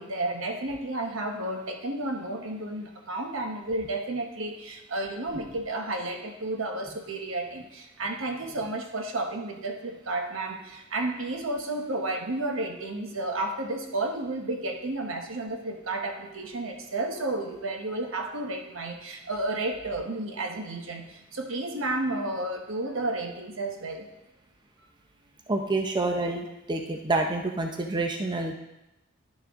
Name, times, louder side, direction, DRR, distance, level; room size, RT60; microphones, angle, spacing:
voice 1, 0.0-24.1, right 2 dB, 75° right, 4 dB, 1.1 m, -32 dB
voice 2, 25.5-28.5, right 2 dB, 20° right, 4 dB, 0.5 m, -28 dB
11.0 x 6.1 x 3.6 m, 0.95 s
head